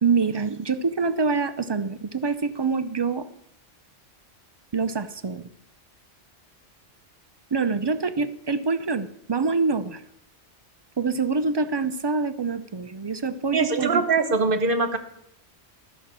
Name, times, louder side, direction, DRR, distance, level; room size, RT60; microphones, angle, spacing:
voice 1, 0.0-3.3 4.7-5.5 7.5-10.0 11.0-14.0, right 4 dB, 35° right, 11 dB, 0.4 m, -25 dB
voice 2, 13.5-15.0, right 4 dB, 55° right, 8 dB, 1.2 m, -22 dB
13.5 x 5.9 x 7.5 m, 0.75 s
omnidirectional pair, 1.1 m